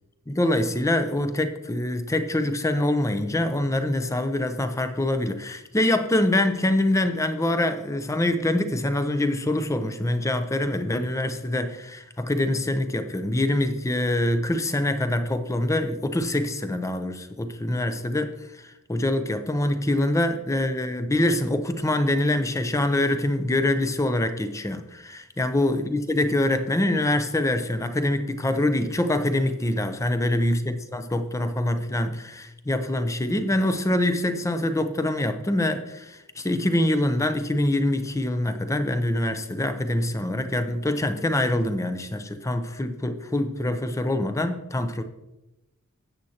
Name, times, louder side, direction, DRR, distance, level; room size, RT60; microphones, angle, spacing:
voice 1, 0.3-18.3 18.9-45.0, left 1 dB, 15° left, 0.6 m, -25 dB
12.5 x 8.5 x 2.9 m
head